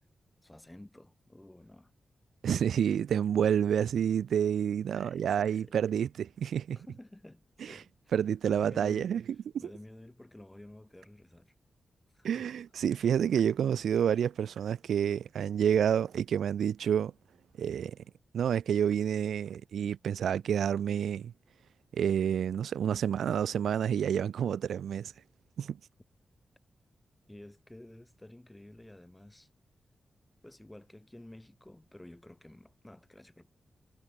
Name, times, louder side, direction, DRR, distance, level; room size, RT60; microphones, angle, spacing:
voice 1, 0.4-1.9 4.9-5.8 6.7-8.1 8.4-11.5 12.1-12.5 27.3-29.5 30.4-33.5, left 1 dB, 15° left, 4.4 m, -51 dB
voice 2, 2.4-6.8 8.1-9.2 12.2-17.1 17.6-18.0 18.3-21.3 21.9-25.1 25.6-25.8, right 8 dB, 85° right, 0.3 m, -29 dB
cardioid pair, 55°, 0 cm